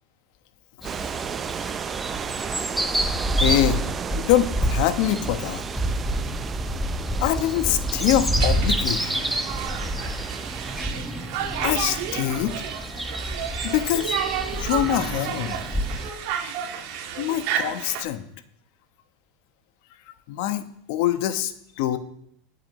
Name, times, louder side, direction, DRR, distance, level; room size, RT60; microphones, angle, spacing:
sound 1, 0.8-16.1, right 1 dB, ahead, 1.2 m, -28 dB
sound 2, 0.8-10.8, right 7 dB, 30° right, 0.5 m, -34 dB
voice 1, 3.4-3.8 4.1-5.6 7.2-9.3 10.2-10.3 11.6-12.6 13.6-14.2 14.5-15.6 16.4-16.5 17.2-18.3 20.3-22.0, left 12 dB, 65° left, 9 dB, 1.2 m, -24 dB
Conversation, 8.3-18.0, right 8 dB, 65° right, 2.1 m, -32 dB
22.0 x 8.4 x 3.2 m, 0.70 s
hypercardioid pair, 95°, 0 cm